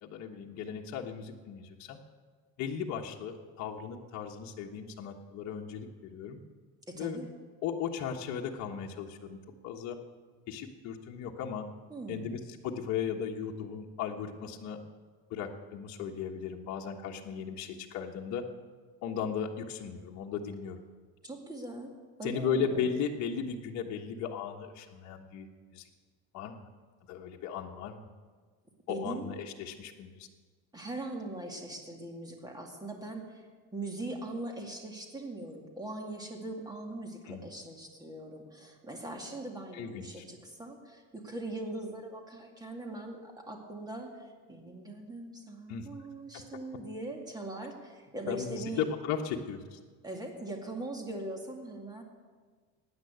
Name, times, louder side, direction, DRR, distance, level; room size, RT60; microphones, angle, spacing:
voice 1, 0.0-2.0 2.6-6.4 6.9-7.2 7.6-9.4 9.6-10.0 10.5-11.7 12.1-14.8 15.3-18.4 19.0-20.8 22.2-25.5 25.7-25.8 26.3-26.6 27.1-28.0 28.9-30.3 37.3-37.4 39.7-40.2 45.7-45.9 48.3-49.8, left 7 dB, 55° left, 0 dB, 1.3 m, -36 dB
voice 2, 6.9-7.3 11.9-12.3 21.2-21.9 22.2-22.9 28.9-29.4 30.7-33.5 33.7-48.9 50.0-52.0, right 2 dB, 10° right, 2 dB, 2.3 m, -41 dB
15.5 x 9.8 x 8.1 m, 1.5 s
cardioid pair, 145°, 33 cm